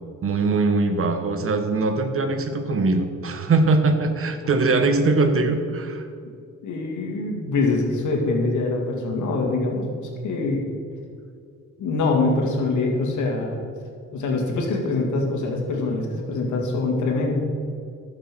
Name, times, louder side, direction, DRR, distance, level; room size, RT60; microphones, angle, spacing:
voice 1, 0.2-6.1, right 3 dB, 45° right, 8 dB, 1.2 m, -21 dB
voice 2, 6.6-9.9 10.2-10.6 11.8-13.6 14.1-17.3, left 3 dB, 75° left, 0 dB, 2.2 m, -24 dB
11.5 x 6.9 x 6.2 m, 2.3 s
cardioid pair, 90°, 30 cm